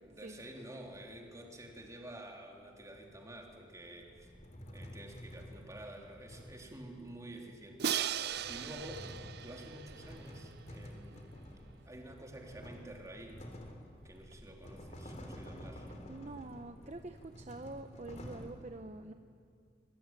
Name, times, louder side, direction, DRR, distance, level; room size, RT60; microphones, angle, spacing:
voice 1, 0.0-4.3 4.7-9.1 9.4-11.3 11.9-13.5 14.0-15.9, right 1 dB, 20° right, 0 dB, 3.6 m, -50 dB
sound 1, 0.6-1.9 2.9-7.5 8.1-18.5, equal, 40° left, 3.7 m, -51 dB
Crash cymbal, 7.8-10.8, right 9 dB, 60° right, 0.6 m, -37 dB
voice 2, 16.1-19.1, right 2 dB, 40° right, 7 dB, 0.9 m, -46 dB
26.0 x 23.5 x 9.1 m, 2.3 s
head